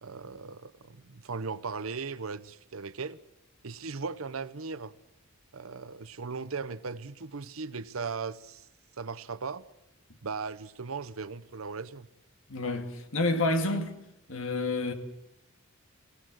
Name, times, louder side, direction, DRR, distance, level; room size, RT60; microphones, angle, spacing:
voice 1, 0.0-3.2 3.6-4.9 5.5-8.7 9.0-9.7 10.2-12.1, right 4 dB, 90° right, 0.8 m, -38 dB
voice 2, 12.5-13.9 14.3-14.9, left 2 dB, 75° left, 2.3 m, -29 dB
25.5 x 18.0 x 7.7 m
head